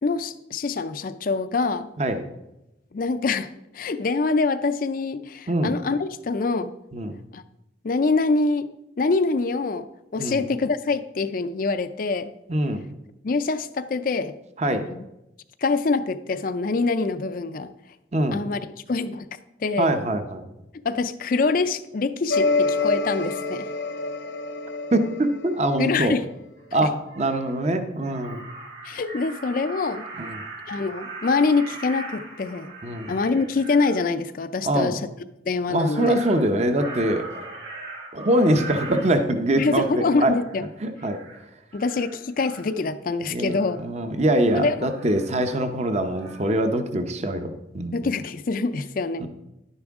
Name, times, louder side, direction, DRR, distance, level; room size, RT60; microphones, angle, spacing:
voice 1, 0.0-1.9 2.9-6.7 7.3-7.4 7.8-8.7 9.0-9.9 10.1-12.3 13.2-14.3 14.9-15.0 15.6-17.7 18.3-18.6 18.9-19.3 19.6-19.9 20.8-23.7 25.8-26.2 28.8-30.1 30.7-32.7 33.1-35.0 35.5-36.2 39.6-40.6 41.7-43.8 44.5-44.7 47.9-49.2, left 3 dB, 45° left, 11 dB, 0.4 m, -25 dB
voice 2, 12.5-12.9 14.6-14.9 18.1-18.4 19.8-20.4 24.9-26.2 26.7-28.4 30.2-30.4 32.8-33.2 34.6-35.0 35.7-37.3 38.1-40.3 40.8-41.2 43.3-48.0 49.2-49.3, right 1 dB, 35° right, 8 dB, 0.7 m, -23 dB
sound 1, 22.3-26.2, left 3 dB, 65° left, 0.8 m, -26 dB
Crow, 26.6-26.7 27.0-27.6 28.0-34.0 35.6-39.9 40.3-40.6 41.0-41.4 41.7-42.7 43.5-43.8 44.8-45.9 46.1-46.4, right 3 dB, 55° right, 3.2 m, -40 dB
11.0 x 9.7 x 3.6 m, 0.91 s
head